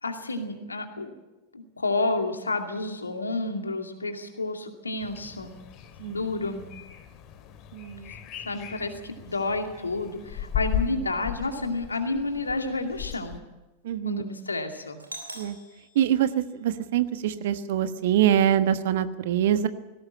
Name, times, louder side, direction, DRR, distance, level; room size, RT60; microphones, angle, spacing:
voice 1, 0.0-1.1 1.5-5.6 6.1-6.7 8.5-13.4 14.0-15.0, left 2 dB, 80° left, 5 dB, 2.4 m, -30 dB
sound 1, 5.0-13.4, left 9 dB, 35° left, 2.1 m, -37 dB
voice 2, 7.7-8.1 13.8-14.2 15.4-15.6 15.9-19.7, right 10 dB, 55° right, 11 dB, 1.3 m, -24 dB
Doorbell, 15.0-17.0, right 1 dB, 85° right, 3.2 m, -44 dB
19.0 x 17.0 x 8.7 m, 1.1 s
figure-of-eight pair, 90°, 0 cm